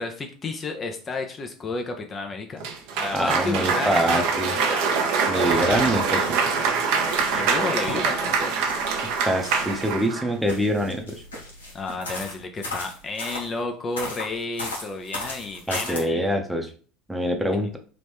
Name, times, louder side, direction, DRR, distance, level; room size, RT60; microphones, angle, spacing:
voice 1, 0.0-2.6 2.9-4.9 5.3-5.8 7.3-8.5 11.7-16.3, left 3 dB, 30° left, 4 dB, 0.5 m, -32 dB
Cheering / Applause, 2.6-10.3, right 5 dB, 65° right, 0.6 m, -24 dB
voice 2, 3.1-4.5 5.3-6.4 9.2-11.2 15.7-16.7 17.1-17.8, equal, 5° right, 3 dB, 0.8 m, -24 dB
sound 1, 5.4-6.7 7.0-10.0 10.4-13.5 14.0-16.0, left 2 dB, 85° left, 1.1 m, -36 dB
2.9 x 2.6 x 3.5 m, 0.41 s
hypercardioid pair, 70°, 0 cm